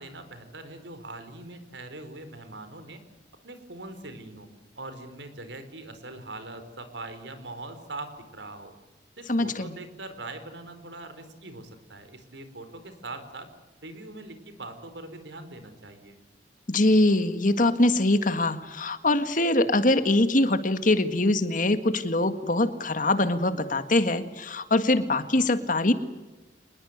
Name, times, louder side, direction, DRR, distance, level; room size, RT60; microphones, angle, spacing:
voice 1, 0.0-3.0 3.4-4.5 4.8-8.7 9.2-13.5 13.8-16.2, right 2 dB, 85° right, 10 dB, 4.5 m, -42 dB
voice 2, 9.3-9.7 16.7-25.9, left 2 dB, 45° left, 10 dB, 1.9 m, -23 dB
26.5 x 21.0 x 8.1 m, 1.1 s
head